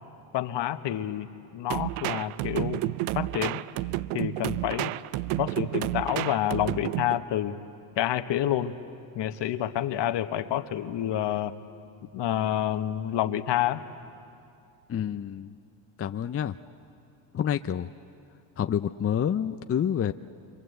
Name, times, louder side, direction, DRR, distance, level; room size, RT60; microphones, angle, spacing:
voice 1, 0.3-1.3 1.5-2.8 3.1-3.6 4.1-4.9 5.4-7.6 8.0-8.8 9.1-11.5 12.1-13.8, left 12 dB, 60° left, 10 dB, 1.3 m, -28 dB
sound 1, 1.7-7.2, right 17 dB, 80° right, 0.6 m, -30 dB
voice 2, 14.9-15.5 16.0-16.6 17.3-17.9 18.6-20.1, left 9 dB, 30° left, 9 dB, 0.6 m, -28 dB
28.0 x 25.0 x 8.0 m, 2.5 s
supercardioid pair, 85°, 49 cm